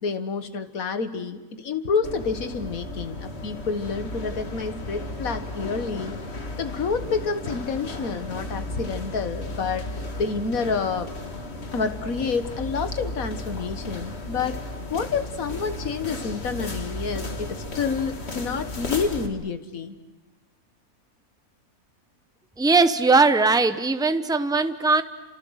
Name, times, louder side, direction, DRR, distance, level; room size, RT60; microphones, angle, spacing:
voice 1, 0.0-6.2 6.6-11.1 11.7-14.6 14.9-20.0, left 5 dB, 65° left, 9 dB, 1.8 m, -28 dB
sound 1, 2.0-19.3, left 2 dB, 45° left, 2.0 m, -34 dB
voice 2, 22.6-25.0, right 3 dB, 5° right, 10 dB, 0.6 m, -19 dB
29.5 x 27.0 x 6.4 m, 1.1 s
omnidirectional pair, 1.6 m